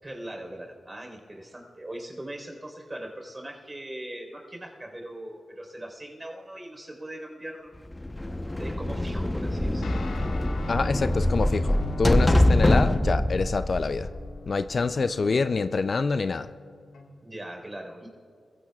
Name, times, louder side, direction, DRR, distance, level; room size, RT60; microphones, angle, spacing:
voice 1, 0.0-7.7 8.6-10.1 14.7-15.4 17.2-18.1, right 1 dB, 25° right, 2 dB, 4.2 m, -40 dB
sound 1, 7.9-14.7, left 1 dB, 20° left, 0.9 m, -24 dB
Guitar, 9.8-17.5, left 2 dB, 85° left, 1.7 m, -43 dB
voice 2, 10.7-14.1 14.5-16.5, left 4 dB, 55° left, 12 dB, 0.4 m, -26 dB
27.0 x 15.5 x 2.4 m, 2.2 s
cardioid pair, 45°, 0 cm